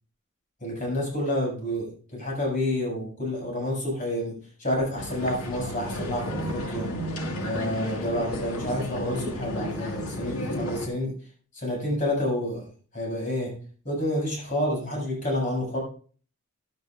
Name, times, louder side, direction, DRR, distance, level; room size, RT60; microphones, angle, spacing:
voice 1, 0.6-6.9 7.4-11.1 11.5-12.6 12.9-13.6 13.9-15.8, left 1 dB, 35° left, -3 dB, 7.1 m, -29 dB
sound 1, 5.0-10.9, left 1 dB, 85° left, 2.0 m, -32 dB
15.5 x 10.5 x 2.6 m, 0.41 s
head